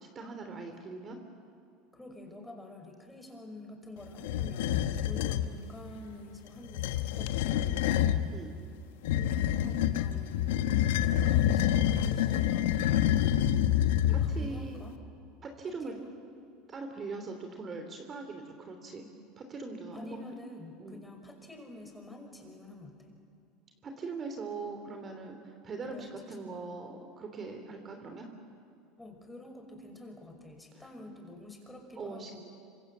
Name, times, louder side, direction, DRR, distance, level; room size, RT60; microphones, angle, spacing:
voice 1, 0.1-1.2 8.3-8.5 14.3-14.8 15.4-15.9 16.7-19.1 19.4-20.2 20.8-21.0 23.8-28.3 32.0-32.4, right 3 dB, 35° right, 5 dB, 3.1 m, -41 dB
voice 2, 1.9-8.3 9.1-13.3 14.0-14.9 15.7-16.1 19.9-23.1 25.9-26.4 29.0-32.4, left 1 dB, 10° left, 2 dB, 5.6 m, -48 dB
sound 1, 4.2-5.5 6.6-8.3 9.0-14.5, left 11 dB, 80° left, 1.2 m, -27 dB
26.5 x 25.5 x 7.5 m, 2.5 s
hypercardioid pair, 95°, 0 cm